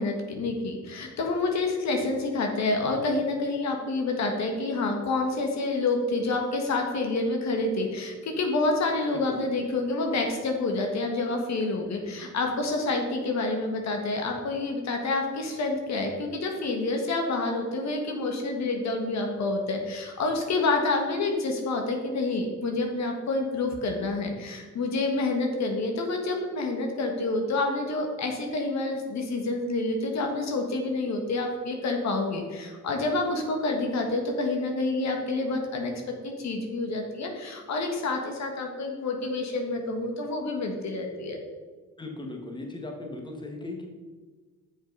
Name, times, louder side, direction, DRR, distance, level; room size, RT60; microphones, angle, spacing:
voice 1, 0.0-35.9 36.2-41.4, left 2 dB, 65° left, 3 dB, 1.5 m, -28 dB
voice 2, 9.1-9.4 42.0-43.9, left 2 dB, 15° left, 2 dB, 1.6 m, -38 dB
7.5 x 5.5 x 5.3 m, 1.4 s
cardioid pair, 90°, 30 cm